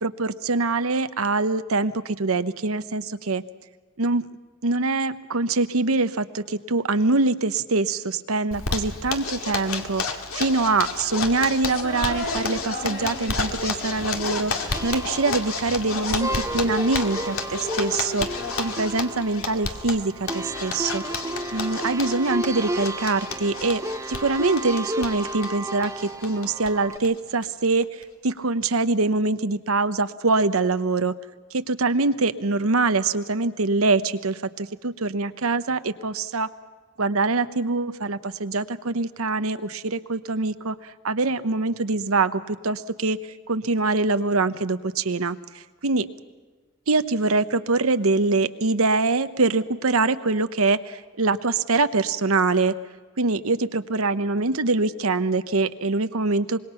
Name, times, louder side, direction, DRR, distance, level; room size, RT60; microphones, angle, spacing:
voice 1, 0.0-3.4 4.0-4.3 4.6-18.3 18.6-21.0 21.5-23.8 24.1-31.1 31.5-36.5 37.0-43.2 43.5-46.1 46.9-52.7 53.2-56.6, right 3 dB, 85° right, 11 dB, 1.0 m, -24 dB
Zipper (clothing), 8.5-26.7 27.0-27.1 27.4-27.5 27.8-28.3, left 4 dB, 85° left, 2.3 m, -32 dB
sound 1, 11.6-15.0 15.8-18.6, left 1 dB, 55° left, 3.6 m, -36 dB
sound 2, 14.7-27.0, right 1 dB, 15° right, 0.7 m, -33 dB
25.0 x 21.5 x 5.8 m, 1.3 s
head